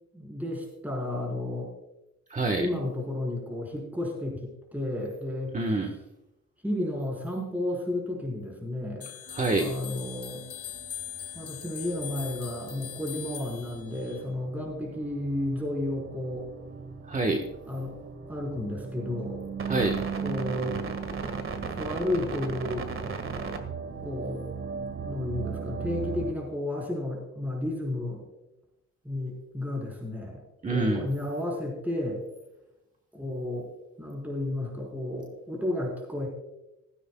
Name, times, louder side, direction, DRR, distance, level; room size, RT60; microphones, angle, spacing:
voice 1, 0.1-1.7 2.5-5.5 6.6-9.1 9.6-10.5 11.3-16.5 17.7-18.0 18.3-19.4 20.2-20.8 21.7-22.9 24.0-24.5 25.0-28.2 29.0-30.4 30.7-32.2 33.1-33.7 34.0-36.3, left 1 dB, 5° right, -2 dB, 4.3 m, -32 dB
voice 2, 2.3-2.7 5.5-5.9 9.3-9.7 17.1-17.4 19.7-20.0 30.6-31.0, right 2 dB, 25° right, 2 dB, 1.3 m, -26 dB
sound 1, 9.0-14.2, left 10 dB, 50° left, 1.8 m, -41 dB
sound 2, 9.3-26.3, right 5 dB, 45° right, 1.8 m, -37 dB
15.5 x 15.5 x 2.3 m, 0.92 s
cardioid pair, 90°, 30 cm